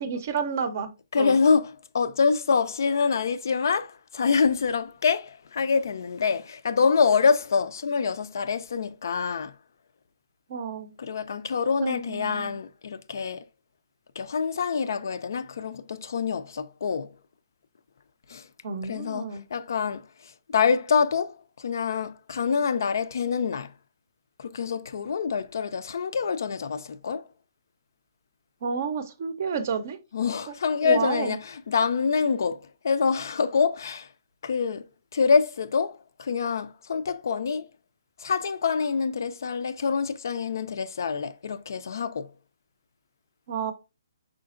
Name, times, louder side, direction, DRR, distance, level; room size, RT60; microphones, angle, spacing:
voice 1, 0.0-1.4 10.5-10.9 11.8-12.6 18.6-19.4 28.6-30.0 30.8-31.4 43.5-43.7, right 6 dB, 40° right, 0.5 m, -30 dB
voice 2, 1.1-9.5 11.0-13.4 14.2-17.1 18.3-18.5 18.8-23.7 24.4-27.2 30.1-34.1 34.4-37.7 38.2-42.3, left 5 dB, 60° left, 0.3 m, -26 dB
4.9 x 3.7 x 2.4 m
hypercardioid pair, 170°, 2 cm